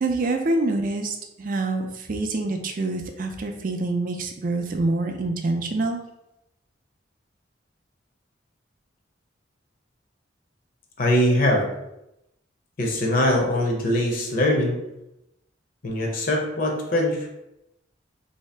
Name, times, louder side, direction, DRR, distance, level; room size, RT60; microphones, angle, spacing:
voice 1, 0.0-6.0, right 2 dB, 45° right, 4 dB, 0.4 m, -26 dB
voice 2, 11.0-11.7 12.8-14.8 15.8-17.3, left 1 dB, 45° left, 0 dB, 0.6 m, -22 dB
3.1 x 2.7 x 3.3 m, 0.88 s
head